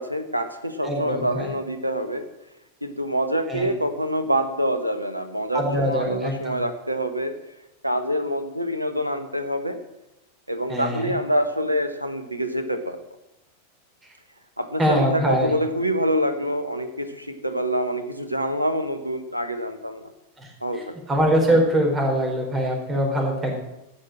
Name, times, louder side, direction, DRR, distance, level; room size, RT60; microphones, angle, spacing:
voice 1, 0.0-2.3 2.8-7.3 7.8-9.8 10.5-13.0 14.6-20.1 20.6-21.0, equal, 85° right, 10 dB, 1.2 m, -26 dB
voice 2, 0.8-1.5 3.5-3.7 5.5-6.6 10.7-11.1 14.8-15.5 20.4-20.5 21.1-23.6, equal, 20° right, 2 dB, 4.2 m, -23 dB
15.5 x 6.5 x 7.4 m, 0.94 s
figure-of-eight pair, 90°, 0 cm